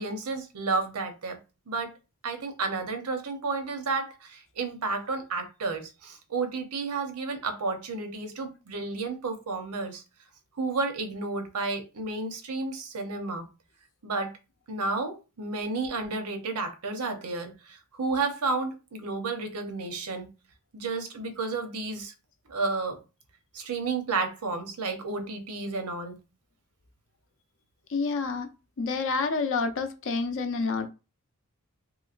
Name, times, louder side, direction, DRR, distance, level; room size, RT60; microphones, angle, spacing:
voice 1, 0.0-1.4 1.7-1.9 2.2-10.0 10.6-13.5 14.0-14.3 14.7-20.3 20.7-22.1 22.5-23.0 23.5-26.2, right 3 dB, 85° right, 0.7 m, -31 dB
voice 2, 27.9-28.5 28.8-30.9, left 4 dB, 60° left, 0.6 m, -28 dB
3.1 x 2.9 x 2.4 m
head